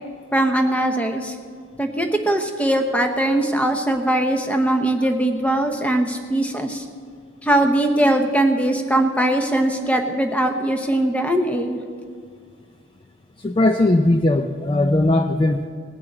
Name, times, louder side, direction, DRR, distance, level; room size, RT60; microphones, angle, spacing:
voice 1, 0.3-1.4 1.8-6.9 7.4-11.8, right 1 dB, 5° left, 5 dB, 0.9 m, -20 dB
voice 2, 13.4-15.7, left 2 dB, 25° left, 6 dB, 0.4 m, -18 dB
19.0 x 6.8 x 8.0 m, 2.1 s
head